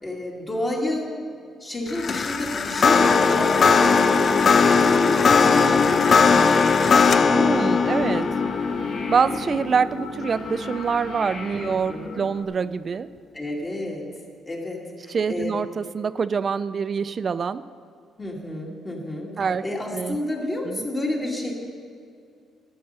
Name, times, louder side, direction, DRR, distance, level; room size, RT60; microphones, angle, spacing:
voice 1, 0.0-1.1 1.6-4.4 4.8-7.4 11.6-12.3 13.3-14.1 14.5-15.6 18.2-19.3 19.6-21.5, left 1 dB, 25° left, -3 dB, 2.3 m, -30 dB
sound 1, 1.9-11.2, left 5 dB, 50° left, 0.6 m, -19 dB
sound 2, 5.3-12.4, left 2 dB, 75° left, 2.7 m, -37 dB
voice 2, 7.3-8.3 9.1-13.1 15.1-17.6 19.4-19.6 19.9-20.2 20.7-20.8, right 6 dB, 45° right, 15 dB, 0.3 m, -25 dB
12.0 x 8.6 x 6.7 m, 2.3 s
cardioid pair, 90°, 0 cm